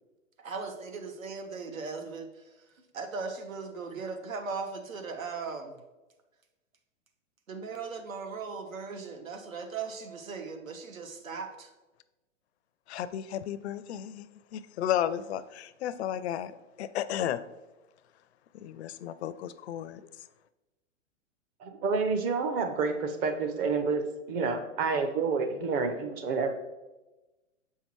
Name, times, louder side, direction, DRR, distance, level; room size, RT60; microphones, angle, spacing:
voice 1, 0.4-2.6 2.9-5.8 7.5-11.7, right 4 dB, 90° right, 6 dB, 1.1 m, -38 dB
voice 2, 12.9-17.4 18.5-20.0, left 10 dB, 55° left, 14 dB, 0.5 m, -33 dB
voice 3, 21.6-26.5, right 4 dB, 25° right, 7 dB, 0.6 m, -29 dB
7.3 x 5.6 x 3.1 m, 1.1 s
hypercardioid pair, 125°, 39 cm